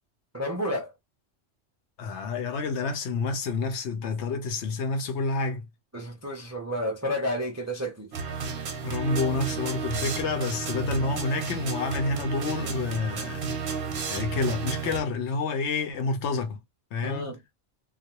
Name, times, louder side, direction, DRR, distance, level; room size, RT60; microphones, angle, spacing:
voice 1, 0.3-0.9 5.9-8.1 17.0-17.4, equal, 25° right, 0.3 m, -31 dB
voice 2, 2.0-5.7 8.8-13.5 14.1-16.6 16.9-17.3, left 4 dB, 70° left, 0.9 m, -29 dB
sound 1, 8.1-15.0, right 5 dB, 55° right, 0.7 m, -32 dB
2.4 x 2.1 x 2.8 m
omnidirectional pair, 1.2 m